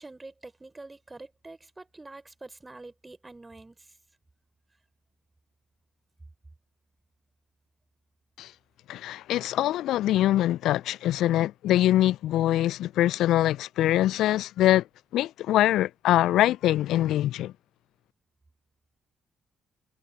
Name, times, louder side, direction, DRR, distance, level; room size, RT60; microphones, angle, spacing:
voice 1, 0.0-4.0, right 2 dB, 20° right, 3.9 m, -46 dB
voice 2, 8.9-14.8 15.1-17.5, left 13 dB, 65° left, 0.5 m, -23 dB
figure-of-eight pair, 40°, 0 cm